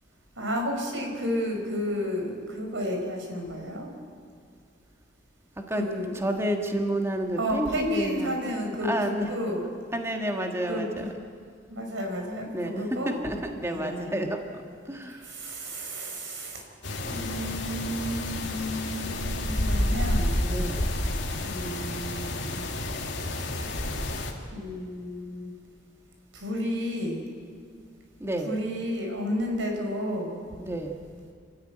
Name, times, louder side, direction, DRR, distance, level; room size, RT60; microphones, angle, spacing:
voice 1, 0.4-3.9 5.8-6.2 7.4-9.7 10.7-10.9 11.7-13.1 13.7-14.2 15.1-16.6 17.1-20.6 21.4-22.7 24.5-25.5 26.3-27.2 28.4-30.4, equal, 85° right, 2 dB, 4.5 m, -32 dB
voice 2, 6.1-8.3 8.8-9.3 9.9-11.1 12.5-15.3 20.4-20.9 28.2-28.5 30.6-31.0, right 1 dB, 15° right, 3 dB, 1.6 m, -30 dB
sound 1, 16.8-24.3, left 1 dB, 65° left, 2.5 m, -30 dB
27.5 x 13.5 x 9.0 m, 2.1 s
head